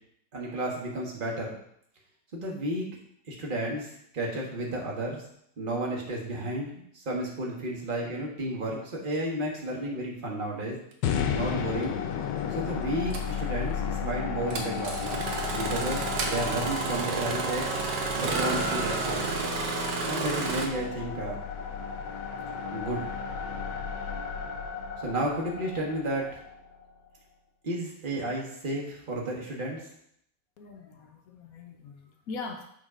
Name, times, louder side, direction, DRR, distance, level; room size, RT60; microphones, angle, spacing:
voice 1, 0.3-1.6 2.3-2.9 3.3-5.2 5.6-10.8 11.3-11.9 12.5-17.8 18.2-19.3 20.0-21.4 22.7-23.1 25.0-26.4 27.6-29.8, right 1 dB, 30° right, -2 dB, 1.5 m, -32 dB
sound 1, 11.0-27.2, left 7 dB, 80° left, 1.3 m, -34 dB
Engine starting, 11.8-11.9 13.1-13.3 14.5-20.7, right 4 dB, 75° right, 1.5 m, -30 dB
voice 2, 30.6-32.7, left 4 dB, 60° left, 3 dB, 1.0 m, -41 dB
6.2 x 4.1 x 5.0 m, 0.69 s
omnidirectional pair, 1.9 m